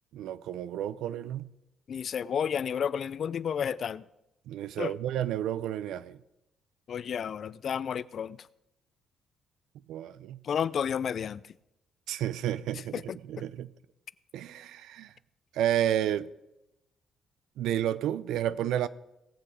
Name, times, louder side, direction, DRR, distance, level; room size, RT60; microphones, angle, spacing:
voice 1, 0.1-1.5 4.5-6.2 9.9-10.4 12.1-13.7 14.3-15.1 15.5-16.3 17.6-18.9, right 11 dB, 85° right, 0.5 m, -31 dB
voice 2, 1.9-4.0 4.8-4.9 6.9-8.4 10.4-11.4 12.9-13.5, left 8 dB, 55° left, 0.4 m, -31 dB
18.5 x 7.2 x 4.9 m
cardioid pair, 90°, 0 cm